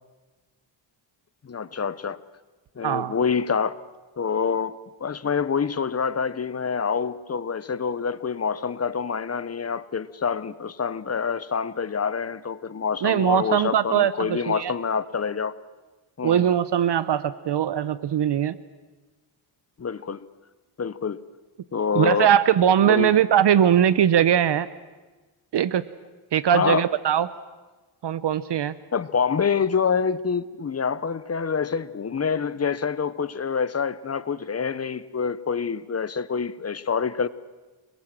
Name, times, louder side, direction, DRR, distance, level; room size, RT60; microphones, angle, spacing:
voice 1, 1.4-2.2 2.8-3.8 4.2-4.8 5.0-15.5 16.2-16.5 19.8-20.3 20.8-21.2 21.7-22.3 22.8-23.1 26.5-26.8 28.9-37.3, left 6 dB, 30° left, 0.9 m, -26 dB
voice 2, 2.8-3.1 13.0-14.7 16.2-18.6 21.9-24.7 25.5-25.9 26.3-27.3 28.0-28.8, right 9 dB, 55° right, 0.8 m, -21 dB
28.0 x 21.0 x 7.6 m
cardioid pair, 110°, 50 cm